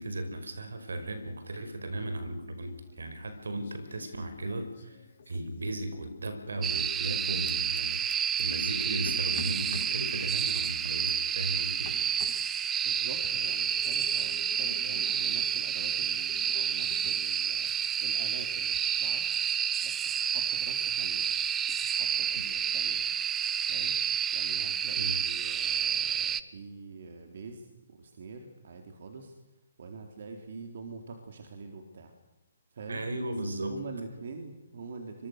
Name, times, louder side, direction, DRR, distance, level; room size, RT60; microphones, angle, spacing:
voice 1, 0.0-5.0 5.3-12.0 25.0-25.1 32.9-33.8, right 1 dB, 80° right, 9 dB, 5.1 m, -36 dB
sound 1, 2.8-3.3 3.6-6.2 7.2-8.4 9.1-10.0 10.4-11.1 11.8-12.5 13.2-17.2 17.5-18.8, left 5 dB, 60° left, 4.8 m, -49 dB
sound 2, 6.6-26.4, right 8 dB, 15° right, 1.0 m, -30 dB
voice 2, 12.8-19.3 19.8-21.3 21.7-23.0 23.7-24.0 24.3-29.3 29.8-32.1 32.7-33.0 33.6-35.3, right 4 dB, 60° right, 4 dB, 3.5 m, -45 dB
25.5 x 23.0 x 6.6 m, 0.94 s
figure-of-eight pair, 135°, 0 cm